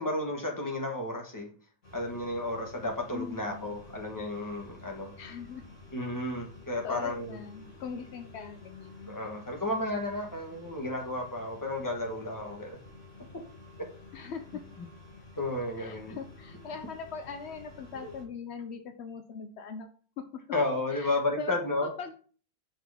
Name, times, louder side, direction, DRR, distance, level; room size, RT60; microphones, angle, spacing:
voice 1, 0.0-1.5 1.9-5.1 5.9-7.4 9.1-12.8 15.4-16.2 18.0-18.1 20.5-21.9, left 2 dB, 15° left, 1 dB, 1.1 m, -32 dB
sound 1, 1.8-18.2, left 3 dB, 45° left, 2.8 m, -51 dB
voice 2, 3.1-3.7 5.2-5.6 6.8-9.2 14.1-14.7 15.8-19.9 20.2-20.3 20.9-21.5 21.8-22.2, left 5 dB, 90° left, 7 dB, 0.5 m, -41 dB
5.9 x 4.9 x 3.5 m, 0.41 s
omnidirectional pair, 1.8 m